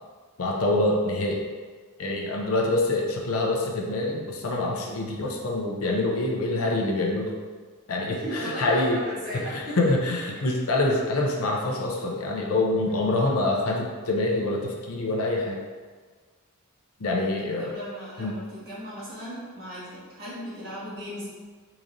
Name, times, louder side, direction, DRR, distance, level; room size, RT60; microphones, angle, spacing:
voice 1, 0.4-1.4 2.0-7.3 7.9-9.0 9.5-15.6 17.0-17.8 18.2-18.4, left 2 dB, 65° left, 0 dB, 0.6 m, -25 dB
voice 2, 8.1-9.9 17.6-21.3, equal, 45° right, -10 dB, 1.5 m, -36 dB
3.8 x 3.2 x 2.6 m, 1.5 s
head